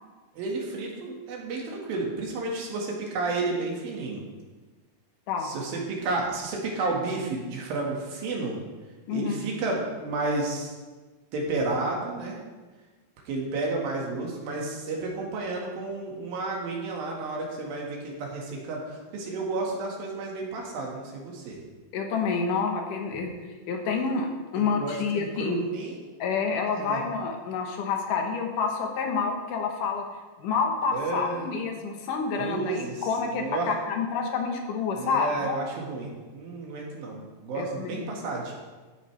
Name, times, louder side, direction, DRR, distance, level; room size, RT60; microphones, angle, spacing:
voice 1, 0.4-4.2 5.4-8.6 9.1-10.7 11.3-12.4 13.3-21.6 24.6-26.0 26.8-27.0 30.9-31.5 32.4-33.7 34.9-38.5, right 3 dB, 90° right, -1 dB, 3.6 m, -31 dB
voice 2, 9.1-9.4 21.9-23.3 23.7-25.6 26.2-30.1 30.4-35.6 37.6-38.1, left 5 dB, 75° left, 3 dB, 2.7 m, -28 dB
13.5 x 9.1 x 3.3 m, 1.3 s
omnidirectional pair, 4.0 m